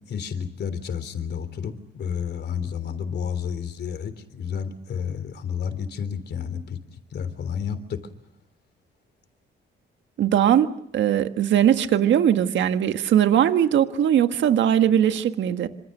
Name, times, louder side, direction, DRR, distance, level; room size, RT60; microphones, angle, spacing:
voice 1, 0.1-6.8 7.1-8.0, left 7 dB, 60° left, 11 dB, 3.4 m, -31 dB
voice 2, 10.2-15.7, right 10 dB, 70° right, 9 dB, 1.6 m, -20 dB
26.5 x 26.5 x 6.7 m, 0.71 s
cardioid pair, 100°, 20 cm